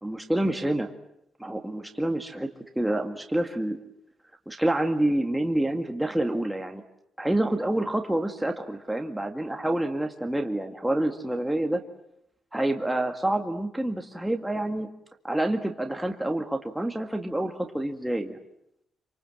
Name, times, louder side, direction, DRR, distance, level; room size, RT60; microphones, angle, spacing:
voice 1, 0.0-0.9 1.4-2.5 2.8-3.8 4.5-6.8 7.2-11.8 12.5-14.9 15.2-18.4, right 1 dB, 5° right, 4 dB, 1.9 m, -27 dB
27.0 x 25.5 x 7.8 m, 0.80 s
cardioid pair, 110°, 0 cm